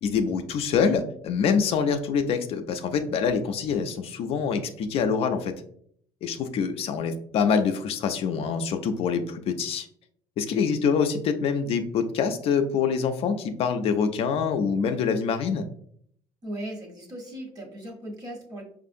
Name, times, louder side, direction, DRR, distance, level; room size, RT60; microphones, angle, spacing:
voice 1, 0.0-5.5 6.2-9.9 10.4-15.6, left 6 dB, 55° left, 6 dB, 0.4 m, -25 dB
voice 2, 16.4-18.6, right 1 dB, 30° right, 1 dB, 1.1 m, -37 dB
5.3 x 2.5 x 2.6 m, 0.65 s
cardioid pair, 120°, 12 cm